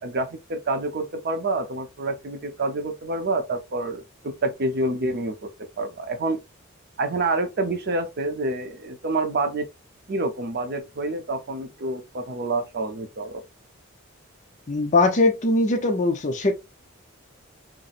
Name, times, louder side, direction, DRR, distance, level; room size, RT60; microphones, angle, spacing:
voice 1, 0.0-5.5 5.8-6.4 7.0-9.7 10.1-13.4, right 2 dB, 50° right, 0.6 m, -27 dB
voice 2, 14.7-16.5, left 2 dB, 35° left, 0.6 m, -21 dB
4.1 x 2.0 x 2.4 m
head